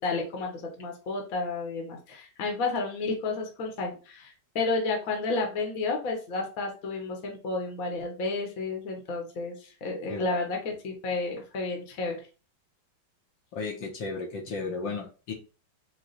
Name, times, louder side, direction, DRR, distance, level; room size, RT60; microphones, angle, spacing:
voice 1, 0.0-12.2, left 3 dB, 50° left, 1 dB, 1.3 m, -31 dB
voice 2, 10.1-10.5 13.5-15.3, left 4 dB, 70° left, 0 dB, 1.6 m, -34 dB
4.8 x 2.3 x 4.0 m, 0.35 s
omnidirectional pair, 2.2 m